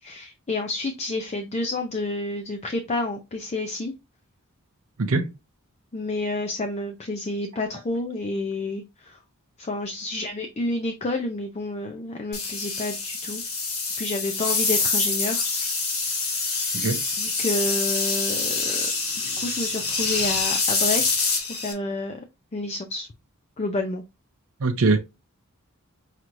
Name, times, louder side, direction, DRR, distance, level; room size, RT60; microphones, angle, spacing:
voice 1, 0.0-3.9 5.9-9.2 9.6-13.4 14.0-15.5 16.4-16.5 17.2-18.9 19.2-22.2 22.5-23.1 23.6-24.0, left 2 dB, 30° left, 0.5 m, -29 dB
sound 1, 12.3-21.7, left 4 dB, 80° left, 2.1 m, -26 dB
voice 2, 24.6-25.0, right 3 dB, 65° right, 0.6 m, -22 dB
5.7 x 3.0 x 2.5 m
head